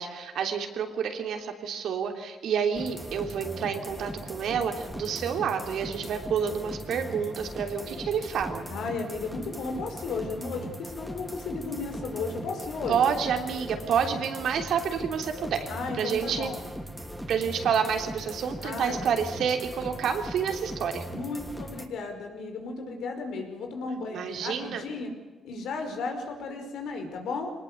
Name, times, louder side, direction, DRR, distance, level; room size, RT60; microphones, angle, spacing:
voice 1, 0.0-8.6 12.9-15.7 15.9-16.5 17.3-21.0 24.1-24.8, right 7 dB, 75° right, 5 dB, 3.3 m, -29 dB
sound 1, 2.7-21.9, equal, ahead, 2.8 m, -39 dB
voice 2, 8.7-13.2 15.7-16.6 18.6-19.1 21.1-25.1 25.4-27.5, left 4 dB, 80° left, 4 dB, 5.1 m, -34 dB
23.5 x 19.5 x 8.1 m, 1.3 s
cardioid pair, 85°, 0 cm